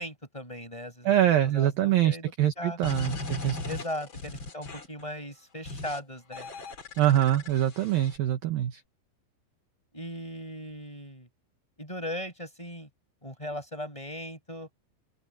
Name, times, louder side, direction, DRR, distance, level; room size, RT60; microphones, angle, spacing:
voice 1, 0.0-1.1 1.4-2.8 3.3-6.5 9.9-11.3 11.8-12.9 13.2-14.7, left 1 dB, 5° left, 6.3 m, -38 dB
voice 2, 1.1-3.6 7.0-8.8, right 12 dB, 70° right, 2.2 m, -24 dB
sound 1, 2.8-5.0 5.7-6.0 6.3-8.2, left 2 dB, 35° left, 2.4 m, -38 dB
open air
omnidirectional pair, 5.8 m